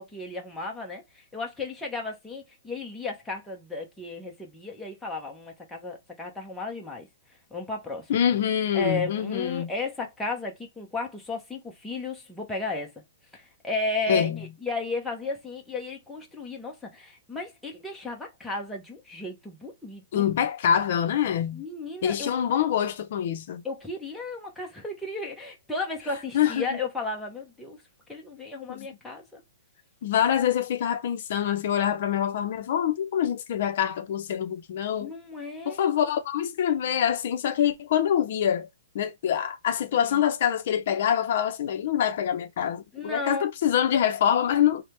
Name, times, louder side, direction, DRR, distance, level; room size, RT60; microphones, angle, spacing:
voice 1, 0.0-7.1 7.5-8.1 8.7-12.9 13.3-20.2 21.5-22.3 23.6-27.8 28.1-29.4 35.0-35.8 40.0-40.2 42.9-43.4, left 3 dB, 5° left, 0.7 m, -34 dB
voice 2, 8.1-9.7 14.1-14.5 20.1-21.6 22.0-23.6 26.3-26.7 28.7-28.9 30.0-35.1 35.7-38.7 38.9-44.8, left 9 dB, 50° left, 0.6 m, -25 dB
3.2 x 2.2 x 2.9 m
hypercardioid pair, 160°, 0 cm